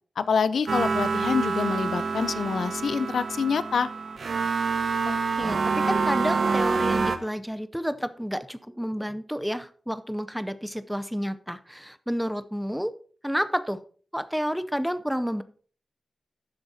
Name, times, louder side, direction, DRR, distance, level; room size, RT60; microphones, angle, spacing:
voice 1, 0.2-3.9, left 6 dB, 85° left, 14 dB, 0.6 m, -26 dB
sound 1, 0.7-7.2, right 4 dB, 60° right, 0.9 m, -26 dB
voice 2, 5.0-12.9 13.2-13.8 14.1-15.4, equal, ahead, 13 dB, 0.6 m, -30 dB
12.0 x 7.2 x 4.2 m, 0.44 s
wide cardioid pair, 160°, 0 cm